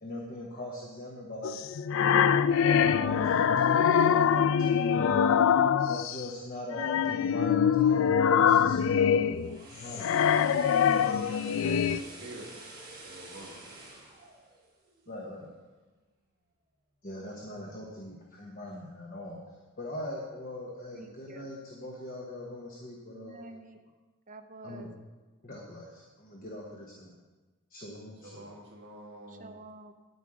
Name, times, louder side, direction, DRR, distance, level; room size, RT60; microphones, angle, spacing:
voice 1, 0.0-1.6 2.0-5.3 5.9-9.4 9.8-10.4 15.1-15.5 17.0-19.4 19.8-23.4 24.6-24.9 25.4-27.1 27.7-28.5, left 1 dB, 40° left, -1 dB, 1.2 m, -41 dB
sound 1, 1.4-6.2 6.7-12.0, left 7 dB, 65° left, 0.3 m, -24 dB
sound 2, 9.1-15.3 15.7-15.9, right 2 dB, 20° right, 3.2 m, -48 dB
voice 2, 10.1-12.8 13.0-13.7 28.2-29.6, right 1 dB, 55° right, -1 dB, 1.5 m, -48 dB
voice 3, 20.9-21.5 23.1-23.8 24.3-24.9 29.3-29.9, right 2 dB, 35° right, 4 dB, 0.9 m, -48 dB
9.6 x 9.3 x 4.9 m, 1.2 s
head